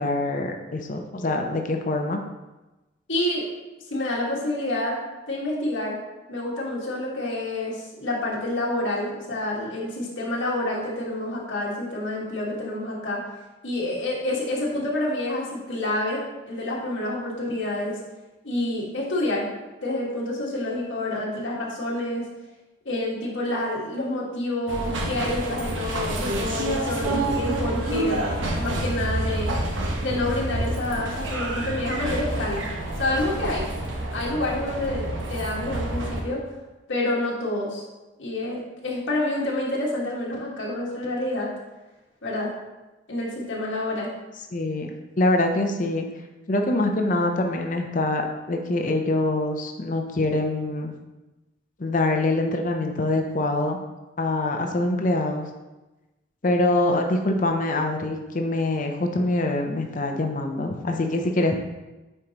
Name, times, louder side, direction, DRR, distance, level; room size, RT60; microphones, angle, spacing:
voice 1, 0.0-2.2 44.5-44.9 45.2-46.1 46.5-48.2 48.5-50.9 51.8-53.8 54.2-55.4 56.4-61.5, left 2 dB, 45° left, 3 dB, 0.6 m, -24 dB
voice 2, 3.1-3.5 3.9-5.0 5.3-6.0 6.3-13.2 13.6-18.0 18.4-19.5 19.8-22.3 22.8-28.3 28.6-29.5 30.0-32.7 33.0-33.7 34.1-36.5 36.9-37.8 38.2-41.5 42.2-42.5 43.1-44.1, left 1 dB, 90° left, -4 dB, 1.7 m, -28 dB
sound 1, 24.7-36.2, right 1 dB, 90° right, 1.0 m, -28 dB
8.6 x 4.6 x 2.9 m, 1.1 s
head